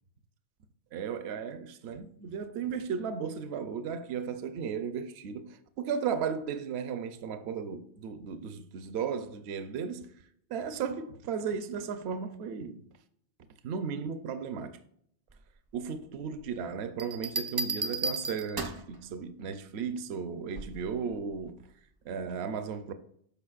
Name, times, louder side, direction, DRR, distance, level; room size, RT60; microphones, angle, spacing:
voice 1, 0.9-10.1 10.5-12.8 13.6-14.8 15.7-21.6 22.0-22.9, right 6 dB, 70° right, 0.9 m, -35 dB
Bell, 17.0-18.9 20.6-20.9, right 2 dB, 25° right, 0.5 m, -34 dB
12.5 x 5.1 x 2.4 m
omnidirectional pair, 1.2 m